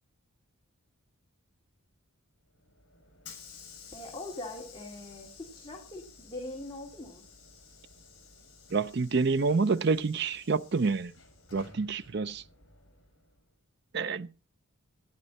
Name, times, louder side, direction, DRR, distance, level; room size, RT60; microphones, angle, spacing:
Hiss / Sliding door, 2.5-13.4, left 5 dB, 55° left, 6.0 m, -53 dB
voice 1, 3.9-7.2, left 2 dB, 20° left, 2.5 m, -42 dB
voice 2, 8.7-11.1 11.5-12.4 13.9-14.3, right 4 dB, 50° right, 0.5 m, -28 dB
14.5 x 10.5 x 4.1 m
head